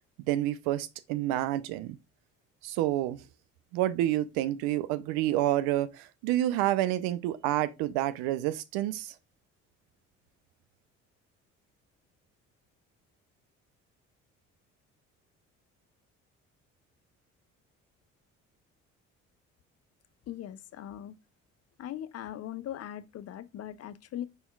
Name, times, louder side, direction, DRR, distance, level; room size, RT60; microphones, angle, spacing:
voice 1, 0.3-2.0 2.6-3.2 3.7-9.1, right 14 dB, 70° right, 0.6 m, -29 dB
voice 2, 20.3-21.2 21.8-24.3, left 11 dB, 40° left, 0.5 m, -40 dB
5.3 x 4.3 x 2.3 m
hypercardioid pair, 50°, 39 cm